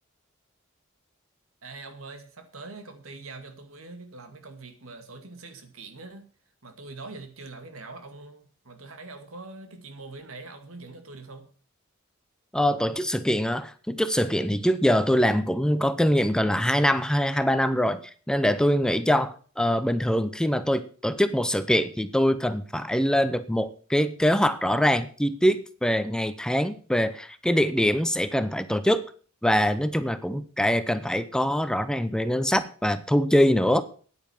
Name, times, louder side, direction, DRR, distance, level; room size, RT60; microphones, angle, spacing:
voice 1, 1.6-6.2 6.6-11.4, right 3 dB, 85° right, 2.2 m, -43 dB
voice 2, 12.5-29.0 29.4-33.8, equal, 5° left, 0.7 m, -23 dB
9.7 x 9.4 x 7.1 m
head